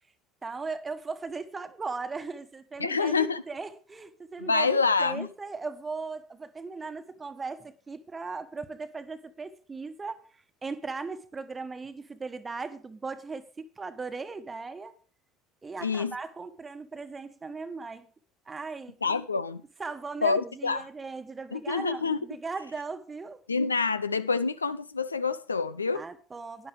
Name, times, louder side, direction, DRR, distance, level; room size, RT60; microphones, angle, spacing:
voice 1, 0.4-14.9 15.6-18.1 18.5-19.2 19.8-23.4 25.9-26.7, right 4 dB, 20° right, 1.2 m, -38 dB
voice 2, 2.8-3.4 4.4-5.3 15.8-16.1 19.0-19.6 20.2-20.8 21.5-22.2 23.5-26.0, left 4 dB, 80° left, 0.5 m, -27 dB
11.0 x 10.0 x 5.0 m
figure-of-eight pair, 65°, 0 cm